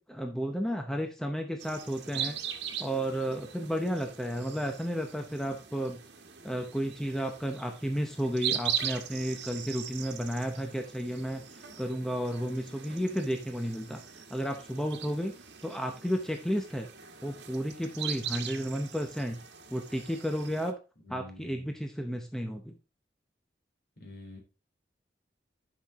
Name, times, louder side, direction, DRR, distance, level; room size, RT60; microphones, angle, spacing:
voice 1, 0.0-2.4 2.8-6.0 6.4-11.4 11.8-15.3 15.6-16.9 17.2-19.4 19.7-20.8 21.1-22.8, equal, 5° left, 4 dB, 0.7 m, -32 dB
sound 1, 1.6-20.7, right 9 dB, 70° right, 1.3 m, -40 dB
voice 2, 21.0-21.8 24.0-24.4, left 2 dB, 55° left, 1 dB, 3.4 m, -47 dB
10.5 x 5.8 x 3.5 m, 0.32 s
head